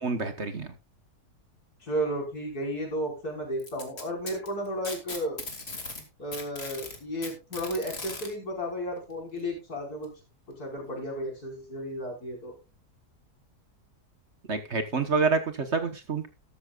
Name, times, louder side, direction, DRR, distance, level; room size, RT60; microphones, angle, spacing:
voice 1, 0.0-0.7 14.5-16.3, right 4 dB, 45° right, 8 dB, 1.5 m, -27 dB
voice 2, 1.8-5.4 6.2-10.1 10.6-12.5, equal, 75° left, -1 dB, 5.8 m, -33 dB
Packing tape duct tape, 3.6-6.0 6.3-8.3 9.4-9.5 10.0-10.1 11.0-11.1, left 3 dB, 40° left, 2.6 m, -38 dB
13.5 x 13.0 x 2.4 m, 0.27 s
omnidirectional pair, 1.7 m